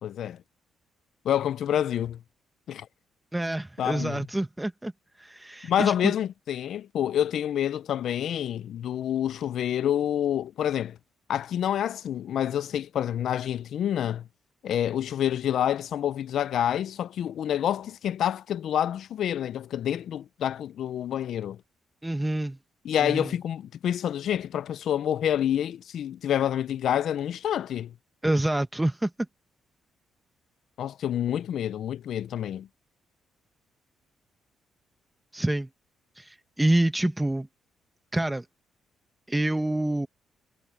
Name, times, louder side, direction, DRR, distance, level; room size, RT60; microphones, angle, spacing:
voice 1, 0.0-0.4 1.2-2.2 2.7-2.9 3.8-4.2 5.6-11.0 11.3-14.2 14.6-21.6 22.8-27.9 30.8-32.7, left 10 dB, 70° left, 0.5 m, -28 dB
voice 2, 3.3-4.9 5.2-6.1 22.0-22.6 23.0-23.3 28.2-29.1 35.3-35.7 36.2-37.5 38.1-38.5 39.3-40.1, right 1 dB, 10° right, 0.9 m, -27 dB
cardioid pair, 105°, 0 cm